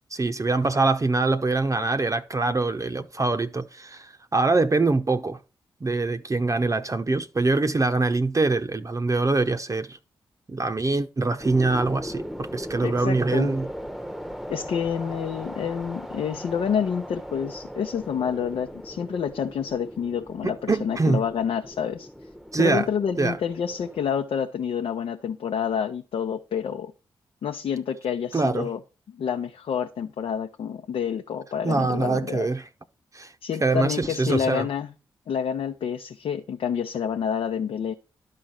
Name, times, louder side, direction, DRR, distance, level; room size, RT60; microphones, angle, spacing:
voice 1, 0.1-5.4 5.8-10.0 10.5-13.7 20.4-21.2 22.5-22.9 23.2-23.4 28.3-28.7 31.6-32.6 33.1-33.3 33.6-34.7, right 3 dB, 35° right, 0.8 m, -24 dB
sound 1, 11.4-24.1, equal, ahead, 0.9 m, -38 dB
voice 2, 12.8-13.6 14.5-22.1 22.6-26.9 27.4-28.8 29.1-32.5 33.4-34.9 35.3-37.9, left 7 dB, 75° left, 0.8 m, -28 dB
11.5 x 4.3 x 6.4 m
supercardioid pair, 40°, 10 cm